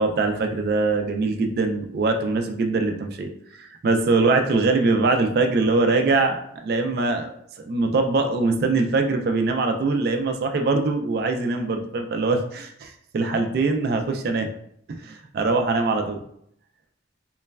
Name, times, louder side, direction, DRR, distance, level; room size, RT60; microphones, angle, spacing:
voice 1, 0.0-7.3 7.6-14.5 14.9-16.2, right 3 dB, 60° right, 5 dB, 0.3 m, -23 dB
3.0 x 2.2 x 2.2 m, 0.69 s
head